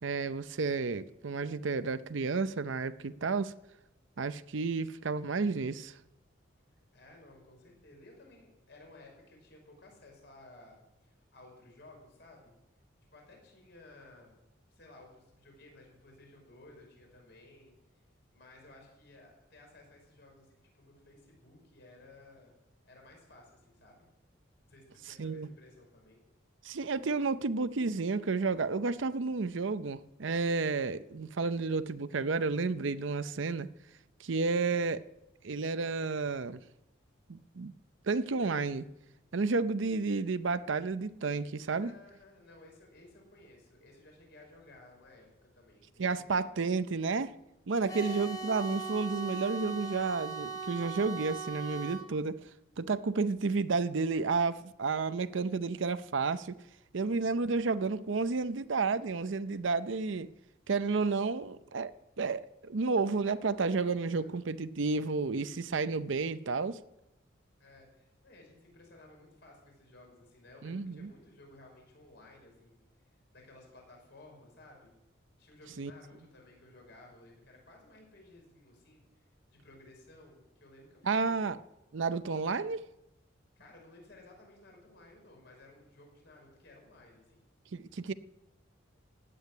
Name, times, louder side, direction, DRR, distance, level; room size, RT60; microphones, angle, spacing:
voice 1, 0.0-3.5 4.2-5.9 25.2-25.5 26.6-33.7 34.2-35.0 35.4-36.6 37.3-37.7 38.1-38.9 39.3-41.9 46.0-47.3 47.7-52.4 52.8-56.6 56.9-60.3 60.7-66.8 70.6-71.1 75.8-75.9 81.0-81.6 81.9-82.9 87.7-88.1, right 4 dB, 70° right, 0.6 m, -31 dB
voice 2, 6.9-12.5 13.1-14.3 14.7-18.0 18.3-22.5 22.8-24.1 24.6-26.2 41.8-45.3 45.5-46.4 47.7-48.4 60.1-60.2 64.0-64.3 67.6-72.8 73.3-74.9 75.4-79.0 79.5-81.4 83.6-87.5, left 2 dB, 60° left, 5.6 m, -56 dB
sound 1, 47.9-52.1, right 4 dB, 20° left, 1.3 m, -39 dB
16.5 x 8.6 x 9.9 m
head